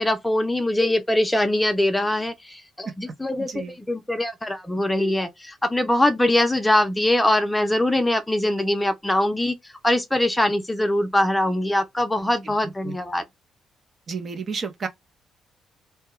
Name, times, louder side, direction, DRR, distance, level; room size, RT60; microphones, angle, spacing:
voice 1, 0.0-3.5 3.8-9.5 9.8-13.2, left 1 dB, 10° left, 0.6 m, -22 dB
voice 2, 14.1-14.9, right 5 dB, 45° right, 0.7 m, -31 dB
2.2 x 2.2 x 2.9 m
cardioid pair, 90°, 0 cm